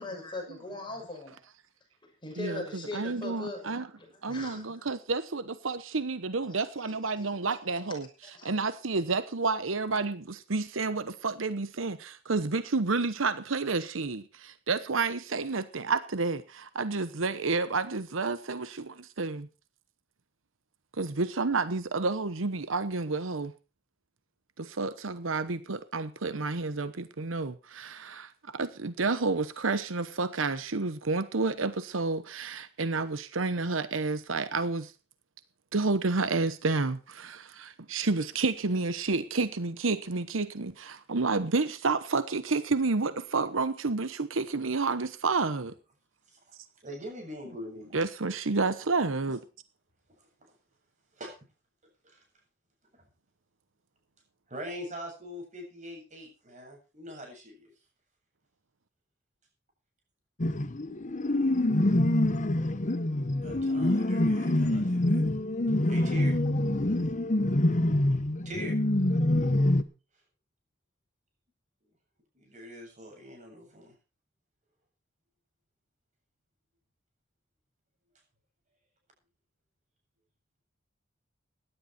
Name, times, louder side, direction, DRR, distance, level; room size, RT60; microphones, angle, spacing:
voice 1, 0.0-1.4 2.2-4.8 6.4-6.6 7.2-7.3 8.2-8.5, left 2 dB, 25° left, 2 dB, 6.2 m, -40 dB
voice 2, 2.9-3.9 4.2-8.1 8.4-19.5 21.0-23.5 24.6-34.9 35.7-45.7 47.9-49.4, right 3 dB, 85° right, 13 dB, 1.0 m, -30 dB
voice 3, 46.8-47.9 49.3-49.4 51.2-51.3 52.0-52.2 54.5-57.7 63.4-65.5 65.8-66.4 68.4-68.7 72.3-73.9, equal, 40° right, 2 dB, 7.8 m, -42 dB
sound 1, 60.4-69.8, left 1 dB, 40° left, 1.0 m, -26 dB
16.5 x 11.0 x 4.5 m, 0.32 s
head